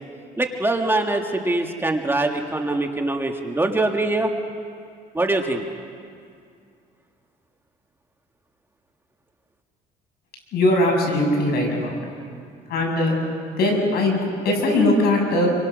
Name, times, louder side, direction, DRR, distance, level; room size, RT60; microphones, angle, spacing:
voice 1, 0.4-4.3 5.1-5.6, right 2 dB, 15° right, 3 dB, 1.8 m, -23 dB
voice 2, 10.5-12.0 12.7-13.2 13.6-15.5, left 1 dB, 70° left, 1 dB, 7.0 m, -20 dB
28.0 x 24.0 x 6.3 m, 2.3 s
cardioid pair, 110°, 17 cm